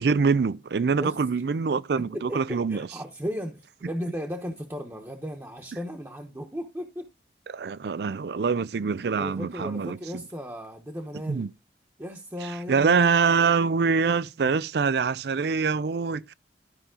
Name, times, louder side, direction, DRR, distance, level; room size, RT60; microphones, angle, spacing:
voice 1, 0.0-2.9 7.5-10.0 11.3-11.5 12.7-16.3, right 5 dB, 65° right, 0.4 m, -24 dB
voice 2, 2.0-7.1 9.2-11.5 12.0-13.1 13.3-13.4, equal, 15° right, 1.0 m, -36 dB
12.5 x 5.5 x 3.8 m
head